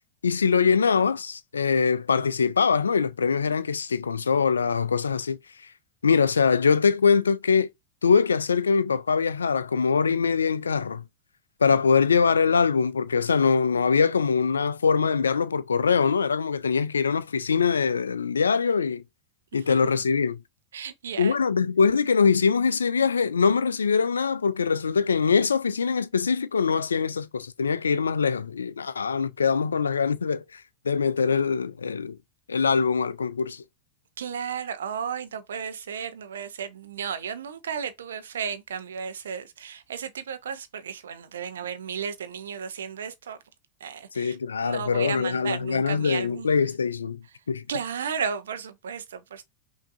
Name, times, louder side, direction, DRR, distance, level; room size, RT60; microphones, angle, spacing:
voice 1, 0.2-5.4 6.0-7.7 8.0-11.0 11.6-19.0 19.5-20.4 21.2-32.2 32.5-33.6 44.1-47.6, left 5 dB, 70° left, 0.4 m, -23 dB
voice 2, 20.7-21.4 34.2-43.4 43.8-44.4 44.6-46.5 47.7-49.4, right 7 dB, 65° right, 0.7 m, -34 dB
5.8 x 2.7 x 2.4 m
figure-of-eight pair, 90°, 0 cm